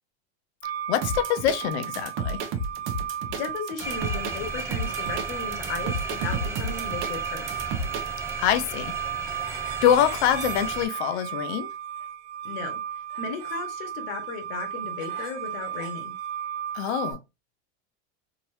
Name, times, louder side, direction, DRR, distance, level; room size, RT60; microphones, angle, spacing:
sound 1, 0.6-17.1, right 9 dB, 85° right, 1.5 m, -35 dB
voice 1, 0.9-2.4 8.4-8.9 9.8-11.7 16.7-17.2, left 10 dB, 80° left, 0.7 m, -24 dB
sound 2, 1.0-8.3, right 3 dB, 40° right, 0.8 m, -32 dB
voice 2, 3.3-7.6 12.4-12.8 13.2-16.1, left 5 dB, 65° left, 1.4 m, -35 dB
sound 3, 3.8-10.9, right 3 dB, 10° right, 0.4 m, -36 dB
3.7 x 3.0 x 2.7 m
supercardioid pair, 155°, 32 cm